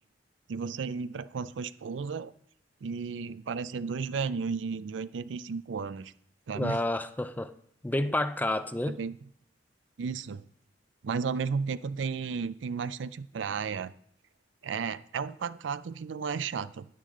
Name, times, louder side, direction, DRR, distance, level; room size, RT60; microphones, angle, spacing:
voice 1, 0.5-2.3 2.8-6.1 6.5-6.8 8.9-9.2 10.0-10.4 11.0-13.9 14.6-16.9, right 5 dB, 85° right, 0.4 m, -33 dB
voice 2, 6.5-7.5 7.8-9.0, left 1 dB, 10° left, 0.4 m, -29 dB
10.0 x 9.5 x 3.7 m
head